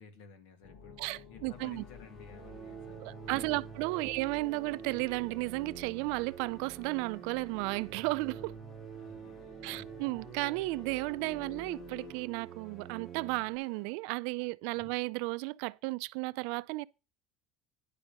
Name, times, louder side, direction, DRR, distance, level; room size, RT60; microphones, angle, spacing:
voice 1, 0.0-3.7 9.0-10.0 14.6-14.9, left 6 dB, 90° left, 2.1 m, -54 dB
sound 1, 0.6-12.1, left 5 dB, 55° left, 1.9 m, -53 dB
voice 2, 1.0-1.8 3.0-8.5 9.6-16.8, right 24 dB, 75° right, 0.4 m, -34 dB
sound 2, 1.5-14.1, left 3 dB, 25° left, 0.8 m, -61 dB
sound 3, 2.3-13.6, right 9 dB, 40° right, 0.9 m, -47 dB
9.8 x 5.3 x 6.2 m
cardioid pair, 170°, 0 cm